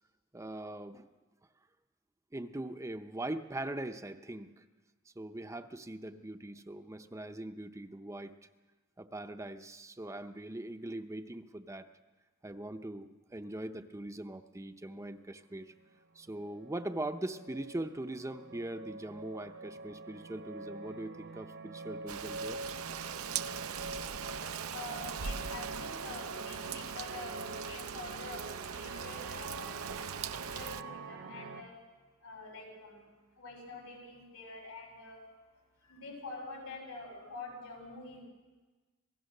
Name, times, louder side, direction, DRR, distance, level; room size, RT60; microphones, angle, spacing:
voice 1, 0.3-1.1 2.3-4.6 5.1-8.4 9.0-11.9 12.4-15.7 16.1-22.6, right 1 dB, 15° right, 8 dB, 0.7 m, -41 dB
sound 1, 15.8-15.9 16.2-31.6, right 3 dB, 60° right, 1.1 m, -45 dB
Rain, 22.1-30.8, right 7 dB, 90° right, 0.7 m, -41 dB
voice 2, 24.7-29.8 30.1-31.8 32.2-33.1 33.4-35.2 35.8-38.3, left 3 dB, 90° left, 1 dB, 7.5 m, -46 dB
26.5 x 18.0 x 6.6 m, 1.3 s
head